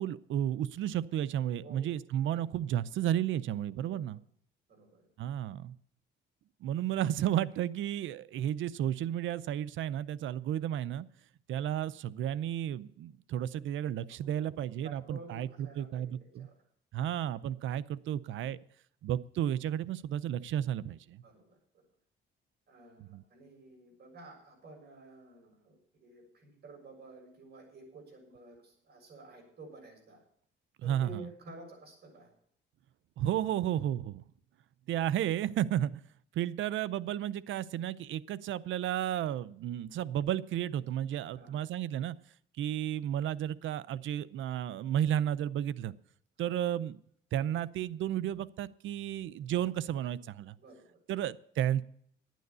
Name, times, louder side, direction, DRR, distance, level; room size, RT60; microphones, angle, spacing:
voice 1, 0.0-4.2 5.2-5.7 6.6-11.1 11.5-16.5 16.9-18.6 19.0-21.2 23.0-23.2 30.8-31.3 33.2-34.2 34.9-36.0 36.3-42.2 42.6-45.9 46.4-47.0 47.3-50.6 51.1-51.8, right 11 dB, 75° right, 18 dB, 0.6 m, -33 dB
voice 2, 4.7-5.0 6.6-6.7 14.1-16.6 21.2-21.8 22.7-30.2 30.8-32.3 41.3-41.5 50.6-51.2, right 2 dB, 55° right, 3 dB, 6.6 m, -52 dB
11.5 x 9.3 x 6.8 m, 0.66 s
cardioid pair, 90°, 20 cm